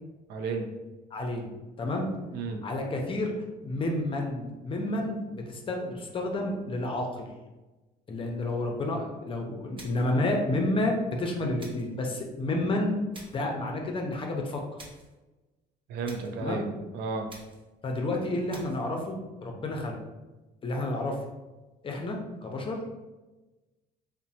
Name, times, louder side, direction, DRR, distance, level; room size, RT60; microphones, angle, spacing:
voice 1, 0.3-0.7 2.3-2.6 15.9-16.6 16.9-17.3, right 4 dB, 75° right, 4 dB, 0.5 m, -32 dB
voice 2, 1.1-1.5 1.8-2.1 2.6-3.3 3.6-7.3 8.1-13.0 13.3-14.6 16.4-16.7 17.8-20.0 20.6-21.2 21.8-22.8, left 1 dB, 30° left, 2 dB, 0.5 m, -30 dB
sound 1, 9.8-10.2 11.6-12.0 13.1-13.5 14.8-15.1 16.0-16.4 17.3-17.7 18.5-18.9, right 1 dB, 30° right, 0.7 m, -49 dB
2.9 x 2.1 x 2.7 m, 1.1 s
cardioid pair, 110°, 17 cm